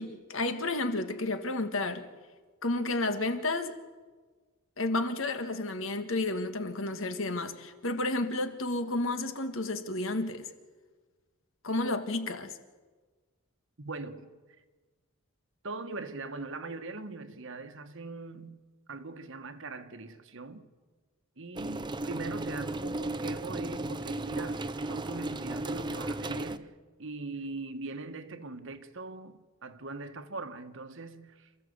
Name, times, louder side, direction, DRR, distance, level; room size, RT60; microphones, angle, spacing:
voice 1, 0.0-2.1 2.6-3.8 4.8-10.5 11.6-12.6, left 2 dB, 70° left, 1.7 m, -31 dB
voice 2, 13.8-14.3 15.6-18.6 18.9-20.7 21.4-26.7 27.0-31.5, right 3 dB, 65° right, 1.4 m, -41 dB
sound 1, 21.6-26.6, right 2 dB, 20° right, 0.7 m, -35 dB
28.0 x 14.5 x 8.0 m
head